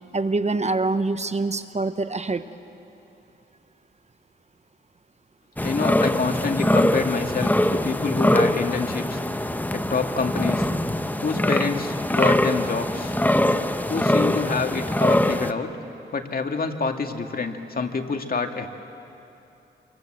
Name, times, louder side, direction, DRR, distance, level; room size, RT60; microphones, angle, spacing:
voice 1, 0.1-2.4, right 3 dB, 35° right, 11 dB, 1.1 m, -25 dB
voice 2, 5.6-9.2 9.7-10.7 11.2-13.1 13.9-15.7 16.1-18.7, left 4 dB, 50° left, 5 dB, 2.0 m, -27 dB
sound 1, 5.6-15.5, left 1 dB, 10° left, 1.1 m, -23 dB
27.5 x 24.5 x 7.8 m, 2.8 s
cardioid pair, 65°, 20 cm